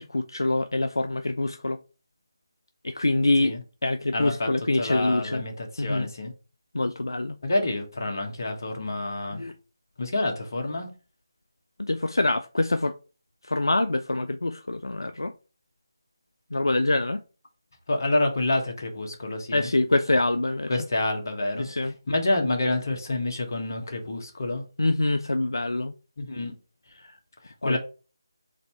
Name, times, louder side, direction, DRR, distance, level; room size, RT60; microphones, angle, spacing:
voice 1, 0.0-1.8 2.8-3.6 3.8-5.4 5.8-6.1 6.7-7.4 9.3-9.5 11.8-12.9 13.4-15.3 16.5-17.2 19.5-20.7 21.6-21.9 24.8-25.9 27.0-27.2 27.6-27.8, left 2 dB, 75° left, 0.3 m, -25 dB
voice 2, 4.1-4.5 4.8-6.3 7.4-9.4 10.0-10.9 17.9-19.7 20.7-21.7 22.1-24.6 26.2-26.5 27.4-27.8, left 2 dB, 50° left, 1.2 m, -28 dB
3.9 x 2.7 x 4.5 m
figure-of-eight pair, 155°, 2 cm